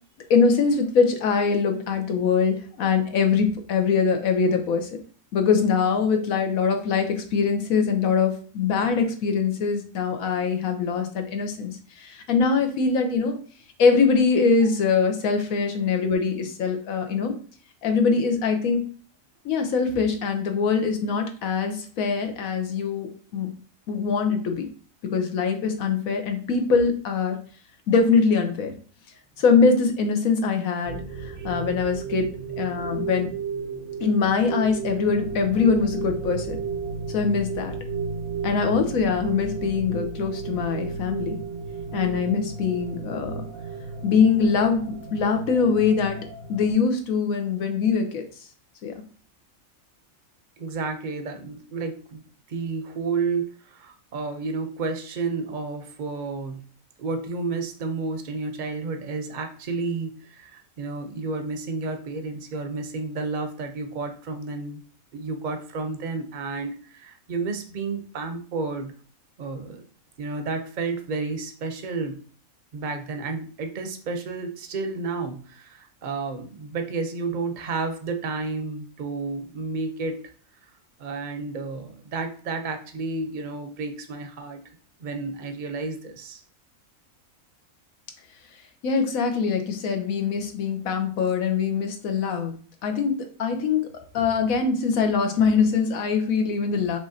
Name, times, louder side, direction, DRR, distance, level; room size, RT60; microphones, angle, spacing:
voice 1, 0.3-4.9 5.3-13.4 13.8-17.3 17.8-18.8 19.4-23.5 23.9-24.7 25.1-27.4 27.9-28.7 29.4-33.3 34.0-36.6 37.1-37.7 38.4-41.4 41.9-43.4 44.0-46.2 46.5-48.2 48.8-49.0 88.8-92.6 92.8-93.8 94.1-97.0, left 5 dB, 80° left, 5 dB, 1.3 m, -23 dB
sound 1, 30.9-46.7, right 5 dB, 90° right, 1.3 m, -33 dB
voice 2, 50.6-52.2 52.5-56.6 57.0-64.8 65.1-68.9 69.4-69.8 70.2-72.2 72.7-80.3 81.0-84.6 85.0-86.4, right 4 dB, 45° right, 6 dB, 0.7 m, -31 dB
5.9 x 3.1 x 2.7 m, 0.42 s
omnidirectional pair, 1.4 m